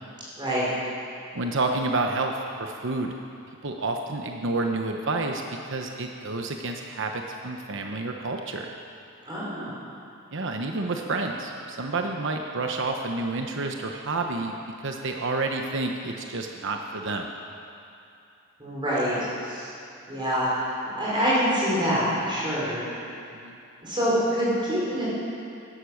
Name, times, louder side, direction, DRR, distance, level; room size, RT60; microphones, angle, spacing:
voice 1, 1.3-3.1 3.6-8.7 10.3-17.3 23.4-23.6, right 2 dB, 65° right, 3 dB, 1.0 m, -29 dB
voice 2, 9.3-9.7 18.6-19.2 19.4-19.7 20.1-22.8 23.8-25.0, equal, 25° right, -8 dB, 4.9 m, -25 dB
16.0 x 12.0 x 6.5 m, 2.7 s
head